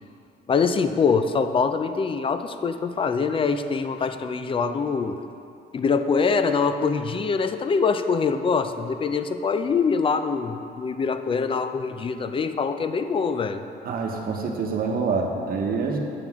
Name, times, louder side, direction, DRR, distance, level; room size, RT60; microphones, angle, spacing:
voice 1, 0.5-5.2 5.7-13.7, left 5 dB, 30° left, 9 dB, 0.4 m, -24 dB
voice 2, 13.8-16.0, right 4 dB, 50° right, 2 dB, 1.1 m, -26 dB
9.1 x 6.9 x 3.6 m, 2.6 s
cardioid pair, 105°, 19 cm